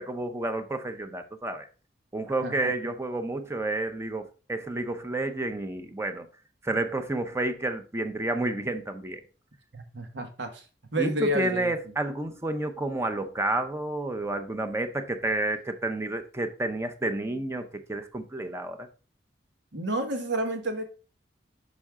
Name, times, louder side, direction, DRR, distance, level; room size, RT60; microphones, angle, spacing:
voice 1, 0.0-1.7 2.1-6.3 6.6-9.2 11.0-18.9, right 2 dB, 15° right, 0.7 m, -30 dB
voice 2, 2.4-2.7 9.7-10.7 10.9-11.7 19.7-20.8, right 1 dB, 90° right, 1.4 m, -30 dB
6.1 x 5.4 x 3.6 m
head